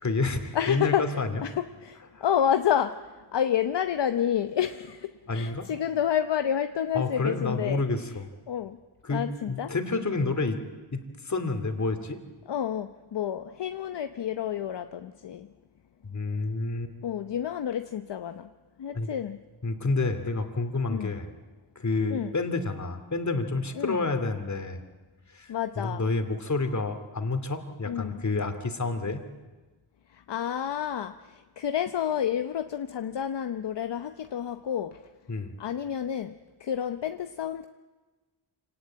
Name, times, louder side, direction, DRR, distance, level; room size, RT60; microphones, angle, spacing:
voice 1, 0.0-1.4 2.1-2.2 5.3-5.7 6.9-8.3 9.0-10.6 10.9-12.2 16.0-16.9 18.9-19.1 19.6-21.3 21.8-24.8 25.3-29.2 35.3-35.5, left 3 dB, 35° left, 8 dB, 2.6 m, -29 dB
voice 2, 0.5-1.1 1.4-3.0 3.3-7.8 8.5-8.8 9.1-9.7 12.5-15.5 17.0-18.5 18.8-19.4 20.9-21.2 22.1-22.3 23.8-24.0 25.5-26.0 27.9-28.2 30.1-35.0 35.6-36.3 36.6-37.7, left 9 dB, 65° left, 9 dB, 0.9 m, -29 dB
26.0 x 18.5 x 8.9 m, 1.3 s
cardioid pair, 85°, 46 cm